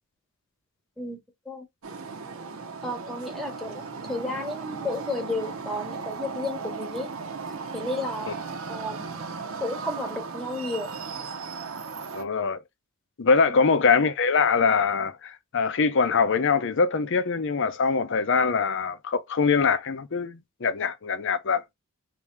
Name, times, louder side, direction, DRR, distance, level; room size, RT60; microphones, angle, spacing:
voice 1, 1.0-1.7 2.8-7.1 7.7-8.3 8.7-9.1 9.6-10.9, left 2 dB, ahead, 1.0 m, -32 dB
sound 1, 1.8-12.2, right 5 dB, 75° right, 0.7 m, -36 dB
voice 2, 12.1-12.6 13.2-21.6, left 5 dB, 60° left, 0.6 m, -23 dB
3.4 x 2.7 x 3.2 m
head